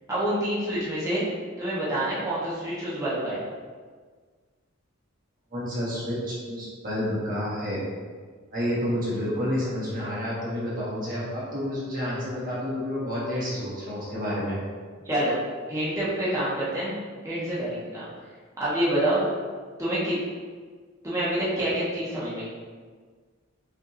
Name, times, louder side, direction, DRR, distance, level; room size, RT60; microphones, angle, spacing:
voice 1, 0.1-1.2 1.6-3.4 15.0-15.3 15.7-16.9 17.2-18.0 18.6-19.2 19.8-20.2 21.0-22.5, right 1 dB, 15° right, -10 dB, 1.2 m, -27 dB
voice 2, 5.5-7.8 8.5-14.6, equal, 45° right, -7 dB, 1.2 m, -29 dB
5.2 x 3.6 x 2.8 m, 1.5 s
head